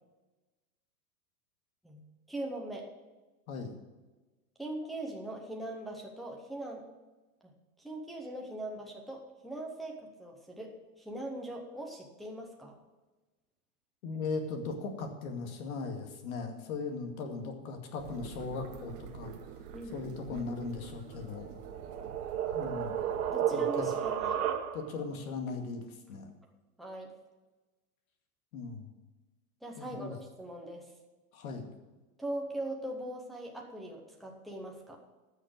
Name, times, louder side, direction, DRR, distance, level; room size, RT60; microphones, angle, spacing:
voice 1, 1.8-2.9 4.6-6.8 7.4-7.5 7.8-12.8 19.7-20.5 22.6-22.8 23.3-24.4 26.8-27.1 29.6-30.9 32.2-35.0, right 1 dB, ahead, -1 dB, 0.7 m, -41 dB
voice 2, 14.0-19.3 19.9-21.5 22.5-23.0 23.5-23.9 24.7-25.8 26.1-26.3 28.5-28.9 29.8-30.1 31.3-31.6, left 4 dB, 65° left, 4 dB, 2.4 m, -38 dB
sound 1, 18.0-23.3, right 8 dB, 35° right, 0.9 m, -47 dB
sound 2, 21.3-25.1, right 9 dB, 70° right, 1.6 m, -32 dB
13.5 x 6.4 x 7.6 m, 1.2 s
supercardioid pair, 170°, 45 cm